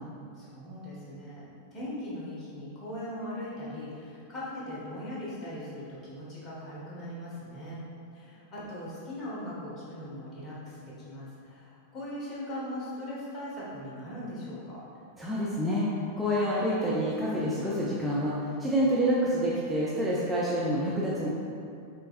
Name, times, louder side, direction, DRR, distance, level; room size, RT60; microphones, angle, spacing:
voice 1, 0.3-1.4 1.7-7.8 8.1-14.8, left 1 dB, 25° left, -8 dB, 1.5 m, -39 dB
voice 2, 15.2-21.3, equal, 10° right, -7 dB, 0.6 m, -27 dB
5.3 x 3.8 x 2.5 m, 2.5 s
figure-of-eight pair, 90°, 0 cm